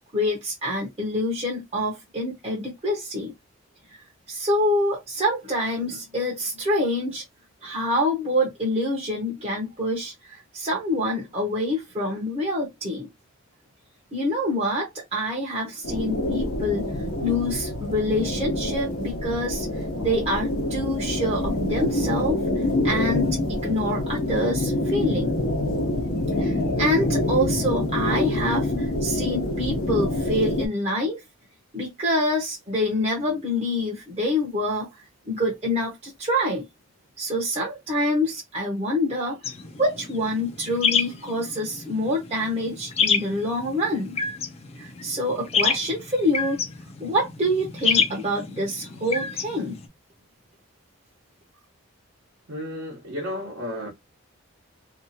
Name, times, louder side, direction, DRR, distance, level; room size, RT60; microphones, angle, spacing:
voice 1, 0.1-3.3 3.9-7.2 7.6-13.1 14.1-16.9 17.2-25.3 26.4-31.2 31.7-36.6 37.2-39.4 39.8-44.2 44.8-46.6 47.0-49.8, left 1 dB, 30° right, 0.7 m, -26 dB
sound 1, 15.8-30.7, left 1 dB, 85° left, 0.8 m, -26 dB
sound 2, 39.4-49.9, left 6 dB, 30° left, 0.4 m, -28 dB
voice 2, 52.5-53.9, left 1 dB, 75° right, 1.0 m, -32 dB
2.7 x 2.3 x 2.7 m
head